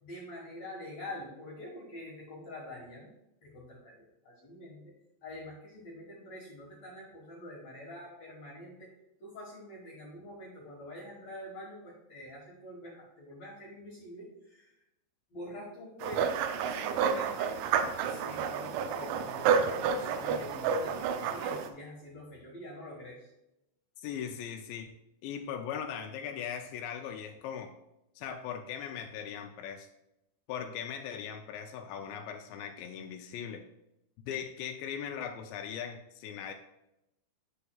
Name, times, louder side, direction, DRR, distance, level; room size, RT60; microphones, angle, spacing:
voice 1, 0.0-3.1 3.4-4.0 4.2-4.8 5.2-8.9 9.2-14.7 15.3-17.5 18.0-18.7 18.9-23.3, left 1 dB, 60° left, -4 dB, 1.9 m, -46 dB
sound 1, 16.0-21.7, right 7 dB, 90° right, 3.0 m, -30 dB
voice 2, 24.0-24.9 25.2-27.7 28.2-29.9 30.5-33.7 34.3-36.5, left 8 dB, 85° left, 5 dB, 2.8 m, -39 dB
8.4 x 7.7 x 2.3 m, 0.88 s
omnidirectional pair, 5.1 m